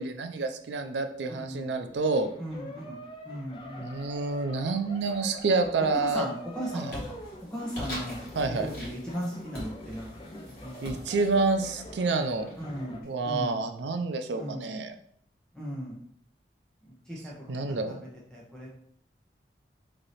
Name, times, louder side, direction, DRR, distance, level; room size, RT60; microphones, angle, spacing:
voice 1, 0.0-2.3 3.8-6.2 6.7-6.8 8.4-8.7 10.8-12.5 13.0-14.9 17.5-18.0, right 3 dB, 80° right, 6 dB, 0.4 m, -28 dB
voice 2, 1.2-1.8 2.4-4.0 5.8-7.2 7.5-8.2 8.5-10.3 10.6-11.1 12.6-13.6 14.3-14.7 15.5-16.0 16.9-18.7, equal, 5° left, -4 dB, 0.9 m, -37 dB
sound 1, 1.8-13.0, equal, 30° left, 0.5 m, -45 dB
sound 2, 5.6-6.0 6.4-13.0, equal, 60° left, 1.6 m, -43 dB
3.3 x 2.8 x 4.0 m, 0.64 s
head